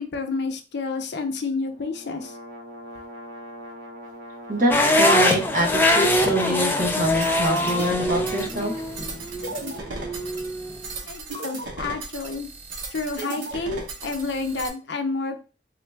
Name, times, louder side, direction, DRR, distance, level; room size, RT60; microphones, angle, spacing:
voice 1, 0.0-2.4 11.1-12.5 12.9-15.4, left 3 dB, 65° left, 5 dB, 0.6 m, -29 dB
sound 1, 1.6-5.5, equal, 65° right, 1.2 m, -42 dB
voice 2, 4.5-8.7, equal, 45° right, 1 dB, 1.0 m, -25 dB
sound 2, 4.7-10.8, left 1 dB, 10° left, 0.4 m, -23 dB
sound 3, 7.2-14.7, right 2 dB, 90° right, 0.8 m, -35 dB
3.8 x 2.3 x 3.3 m, 0.34 s
head